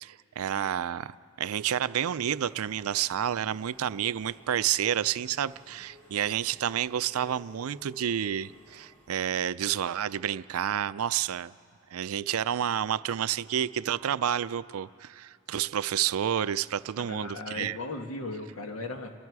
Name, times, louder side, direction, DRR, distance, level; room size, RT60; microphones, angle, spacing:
voice 1, 0.0-11.5 11.9-17.8, right 9 dB, 85° right, 17 dB, 0.4 m, -30 dB
Engine / Mechanisms, 2.3-9.2, equal, 10° left, 4.0 m, -57 dB
voice 2, 17.0-19.1, left 2 dB, 80° left, 4 dB, 1.6 m, -37 dB
29.5 x 21.5 x 4.8 m, 2.4 s
head